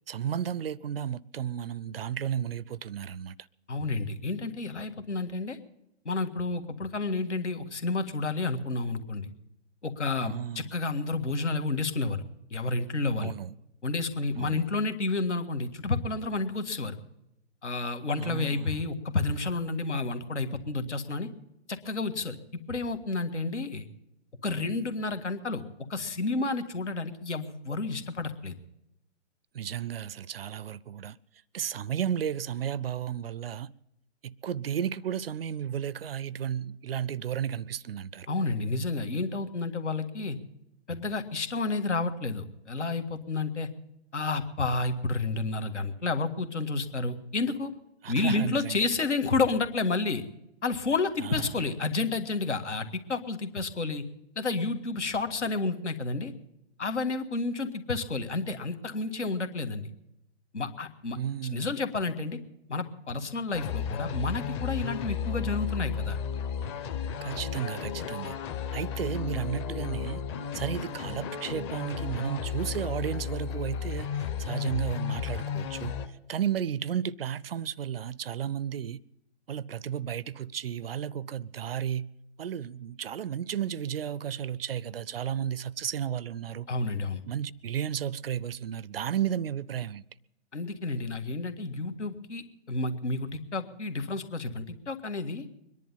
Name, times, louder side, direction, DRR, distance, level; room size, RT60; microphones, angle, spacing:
voice 1, 0.1-3.4 10.2-10.6 13.2-13.5 14.4-14.6 18.2-18.8 29.5-31.2 31.5-33.7 34.2-38.3 48.0-48.9 51.2-51.7 61.1-61.7 67.2-68.4 68.7-70.2 70.5-76.0 76.3-79.0 79.5-82.1 82.4-86.7 87.3-90.0, right 9 dB, 55° right, 0.5 m, -33 dB
voice 2, 3.7-5.6 6.1-9.3 9.8-12.2 12.5-13.3 13.8-17.0 17.6-21.3 21.7-22.4 22.7-23.9 24.4-25.6 25.9-28.5 38.3-40.4 40.9-43.7 44.1-47.7 48.1-50.2 50.6-54.0 54.4-56.3 56.8-59.9 60.5-61.2 61.5-62.4 62.7-66.2 86.7-87.2 90.5-95.5, left 3 dB, 80° left, 1.8 m, -30 dB
sound 1, 63.5-76.1, left 7 dB, 25° left, 0.9 m, -33 dB
22.5 x 11.0 x 5.5 m
figure-of-eight pair, 135°, 35 cm